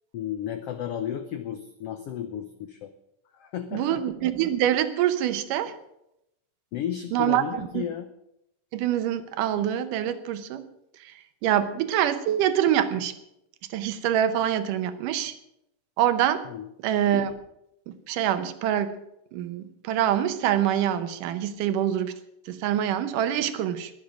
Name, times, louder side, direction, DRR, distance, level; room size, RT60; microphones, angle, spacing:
voice 1, 0.1-2.9 3.3-4.0 6.7-8.1 16.4-16.7, left 9 dB, 80° left, 9 dB, 1.3 m, -33 dB
voice 2, 3.7-5.7 7.1-7.8 8.7-10.7 11.0-11.2 11.4-13.1 13.7-15.3 16.0-16.5 16.8-17.3 17.9-18.9 19.3-22.1 22.5-23.9, right 10 dB, 80° right, 11 dB, 2.5 m, -25 dB
22.0 x 8.6 x 5.1 m, 0.83 s
omnidirectional pair, 3.8 m